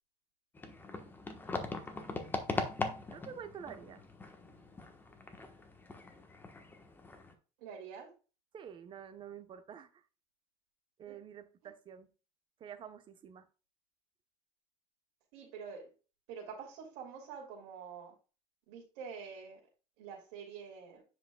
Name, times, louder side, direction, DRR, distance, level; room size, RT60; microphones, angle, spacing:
sound 1, 0.6-7.3, left 3 dB, 15° left, 1.2 m, -41 dB
voice 1, 3.1-4.0 8.5-10.0 11.0-12.1 12.6-13.5, right 8 dB, 40° right, 1.0 m, -49 dB
voice 2, 7.6-8.1 11.1-11.2 15.3-15.9 16.3-18.1 18.7-19.6 20.0-21.0, right 6 dB, 90° right, 2.6 m, -46 dB
9.4 x 5.1 x 2.3 m
cardioid pair, 125°, 13 cm